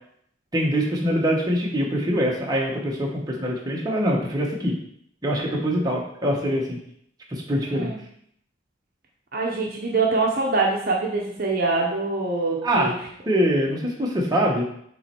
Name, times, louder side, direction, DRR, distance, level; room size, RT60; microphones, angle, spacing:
voice 1, 0.5-4.8 5.2-6.8 7.3-7.9 12.6-12.9 13.3-14.6, equal, 20° right, -2 dB, 1.0 m, -23 dB
voice 2, 7.6-8.0 9.3-12.9, right 3 dB, 50° right, -1 dB, 0.8 m, -24 dB
7.3 x 3.1 x 4.4 m, 0.69 s
head